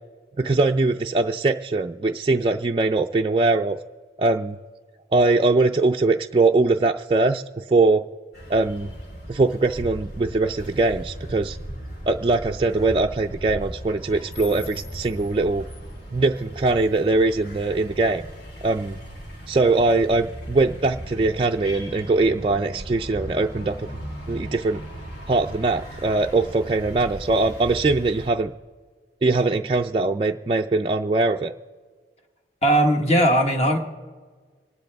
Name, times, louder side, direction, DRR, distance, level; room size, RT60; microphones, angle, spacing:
voice 1, 0.4-3.8 4.2-4.6 5.1-8.0 8.5-8.9 9.3-11.6 12.1-15.7 16.1-18.2 18.6-19.0 19.5-23.9 24.3-24.8 25.3-28.5 29.2-31.5, right 3 dB, 30° right, 2 dB, 0.4 m, -21 dB
sound 1, 8.3-28.3, equal, 65° left, 3.3 m, -37 dB
voice 2, 32.6-33.8, right 1 dB, 35° left, 3 dB, 1.5 m, -18 dB
26.5 x 12.0 x 3.4 m, 1.5 s
head